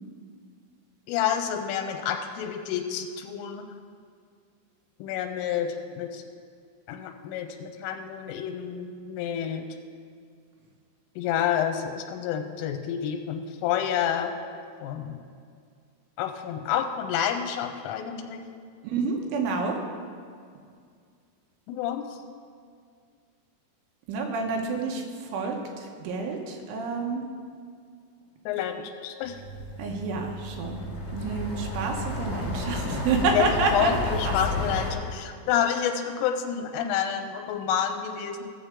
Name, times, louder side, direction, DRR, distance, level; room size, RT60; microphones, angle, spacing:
voice 1, 1.1-3.6 5.0-6.2 6.9-9.7 11.2-14.4 14.8-15.2 16.2-18.4 21.7-22.2 28.5-28.8 29.0-29.4 33.3-33.9 34.2-38.5, left 9 dB, 90° left, 5 dB, 3.2 m, -29 dB
voice 2, 18.8-19.8 24.1-25.0 25.3-27.2 29.8-30.8 31.1-34.7, right 3 dB, 75° right, 2 dB, 3.3 m, -28 dB
sound 1, 29.2-34.9, left 1 dB, 60° left, 3.6 m, -32 dB
17.0 x 7.2 x 3.7 m, 2.2 s
omnidirectional pair, 5.8 m